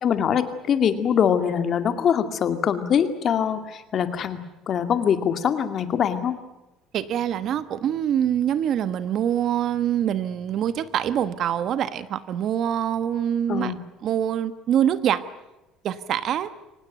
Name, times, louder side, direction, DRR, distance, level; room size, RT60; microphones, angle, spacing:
voice 1, 0.0-6.3 13.5-13.8, left 8 dB, 40° left, 9 dB, 2.2 m, -23 dB
voice 2, 6.9-13.7 14.0-15.2 15.8-16.5, right 10 dB, 50° right, 13 dB, 1.3 m, -24 dB
24.5 x 19.0 x 9.4 m, 0.98 s
cardioid pair, 135°, 0 cm